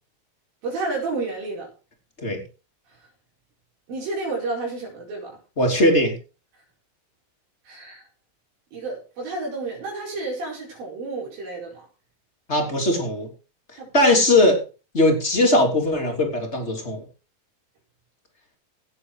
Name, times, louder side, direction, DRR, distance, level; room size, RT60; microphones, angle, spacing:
voice 1, 0.6-1.7 3.9-5.4 7.6-8.0 8.7-11.9 13.7-13.9, right 3 dB, 80° right, -3 dB, 6.6 m, -31 dB
voice 2, 5.6-6.1 12.5-13.3 13.9-14.6 14.9-17.0, left 1 dB, 20° left, 3 dB, 3.3 m, -19 dB
17.0 x 7.8 x 4.9 m, 0.33 s
omnidirectional pair, 4.1 m